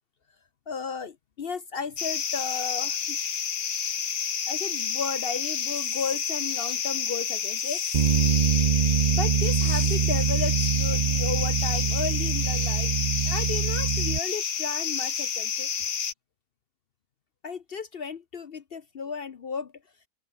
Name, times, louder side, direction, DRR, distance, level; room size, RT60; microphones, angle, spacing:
voice 1, 0.7-3.2 4.5-7.8 9.1-15.7 17.4-19.7, left 5 dB, 50° left, 0.7 m, -34 dB
sound 1, 2.0-16.1, left 7 dB, 75° left, 2.2 m, -29 dB
Bass guitar, 7.9-14.2, right 8 dB, 65° right, 0.4 m, -24 dB
open air
omnidirectional pair, 1.8 m